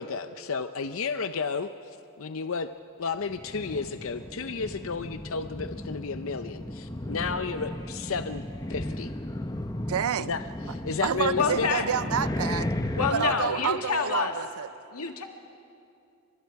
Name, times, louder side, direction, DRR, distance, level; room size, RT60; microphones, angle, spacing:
voice 1, 0.0-2.7 3.0-9.1 10.2-11.7 13.2-13.5, left 5 dB, 65° left, 0.6 m, -32 dB
sound 1, 3.2-13.1, left 1 dB, 15° left, 0.8 m, -35 dB
voice 2, 9.9-10.3 11.0-12.7 13.1-14.7, right 8 dB, 75° right, 0.5 m, -29 dB
voice 3, 11.4-11.8 12.9-14.3 14.9-15.2, left 5 dB, 90° left, 2.1 m, -27 dB
29.5 x 25.0 x 4.7 m
head